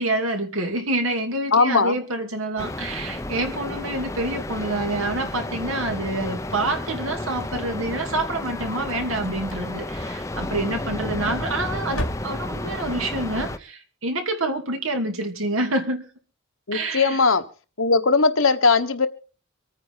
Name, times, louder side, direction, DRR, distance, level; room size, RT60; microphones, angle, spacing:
voice 1, 0.0-16.0 16.7-17.2, right 2 dB, 75° right, 2.8 m, -27 dB
voice 2, 1.5-2.0 16.7-17.4 17.8-19.1, left 4 dB, 70° left, 1.3 m, -19 dB
sound 1, 2.6-13.6, left 1 dB, 15° left, 0.8 m, -32 dB
sound 2, 7.8-8.9 9.4-10.1 11.0-11.5 11.9-12.8, left 1 dB, 85° left, 2.1 m, -35 dB
25.5 x 9.4 x 4.0 m
head